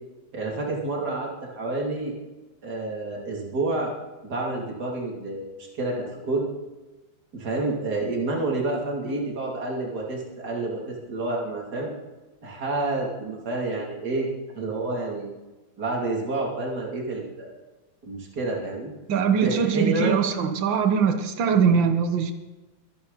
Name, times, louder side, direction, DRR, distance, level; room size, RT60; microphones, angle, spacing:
voice 1, 0.3-2.1 2.6-3.9 4.2-6.5 7.3-11.9 12.4-14.3 14.5-15.3 15.8-17.5 18.0-18.9 19.3-20.2, right 2 dB, 55° right, -2 dB, 3.4 m, -29 dB
voice 2, 19.1-22.3, right 6 dB, 75° right, 7 dB, 2.0 m, -22 dB
24.0 x 10.5 x 4.1 m, 1.1 s
omnidirectional pair, 2.1 m